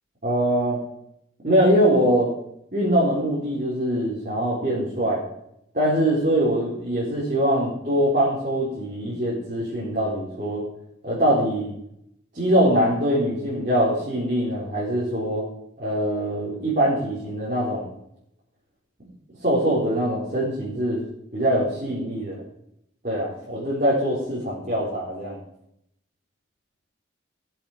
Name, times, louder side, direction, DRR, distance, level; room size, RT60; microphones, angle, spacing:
voice 1, 0.2-0.8 1.4-2.3 2.7-5.2 5.7-10.6 11.0-11.7 12.3-15.4 15.8-17.9 19.4-21.1 21.3-22.4 23.0-25.4, equal, 40° right, -7 dB, 3.7 m, -23 dB
17.0 x 7.4 x 4.9 m, 0.76 s
head